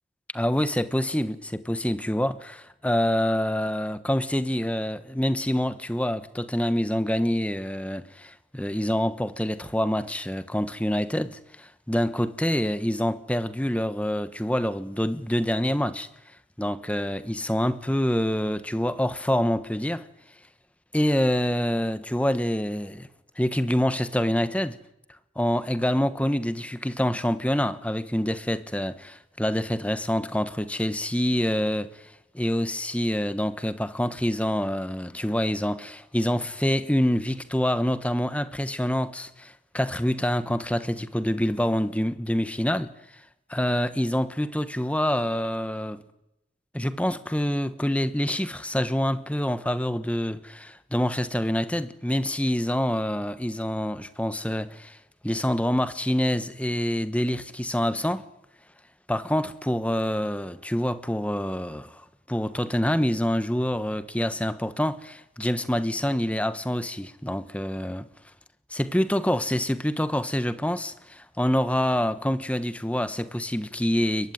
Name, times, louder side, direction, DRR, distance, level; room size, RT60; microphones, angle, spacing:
voice 1, 0.3-16.1 16.6-20.1 20.9-23.1 23.4-24.8 25.4-32.0 32.3-42.9 43.5-46.0 46.7-55.0 55.2-58.2 59.1-62.0 62.3-68.0 68.7-74.3, equal, 5° left, 1.1 m, -26 dB
22.5 x 22.5 x 9.4 m
head